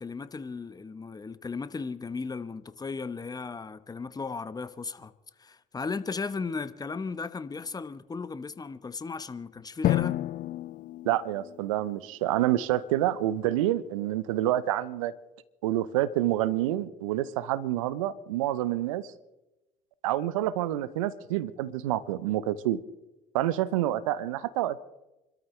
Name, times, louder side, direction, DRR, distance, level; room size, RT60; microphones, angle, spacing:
voice 1, 0.0-5.1 5.4-10.2, left 4 dB, 25° left, 0.9 m, -36 dB
Drum, 9.8-12.3, left 13 dB, 50° left, 0.7 m, -30 dB
voice 2, 11.0-15.1 15.6-19.1 20.0-22.8 23.3-24.8, right 13 dB, 75° right, 0.7 m, -28 dB
28.5 x 13.0 x 3.2 m
hypercardioid pair, 60°, 17 cm